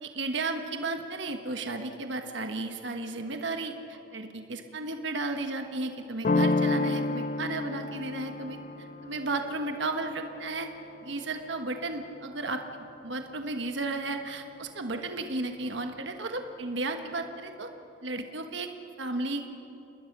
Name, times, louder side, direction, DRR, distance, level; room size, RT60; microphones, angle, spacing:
voice 1, 0.0-10.7 11.0-17.7 18.0-18.7 19.0-19.5, right 2 dB, 65° right, 5 dB, 1.4 m, -34 dB
sound 1, 6.2-11.8, left 2 dB, 40° left, 0.4 m, -31 dB
28.0 x 20.0 x 6.1 m, 2.8 s
head